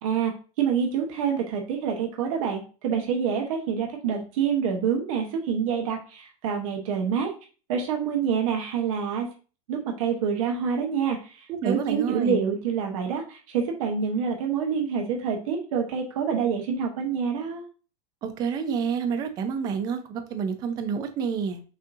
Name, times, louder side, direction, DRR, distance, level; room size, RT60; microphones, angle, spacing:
voice 1, 0.0-7.3 7.7-9.3 9.7-17.7, right 7 dB, 65° right, 2 dB, 1.0 m, -27 dB
voice 2, 11.5-12.4 18.2-21.6, right 6 dB, 20° right, 7 dB, 0.4 m, -28 dB
6.1 x 2.7 x 2.6 m, 0.36 s
supercardioid pair, 175°, 19 cm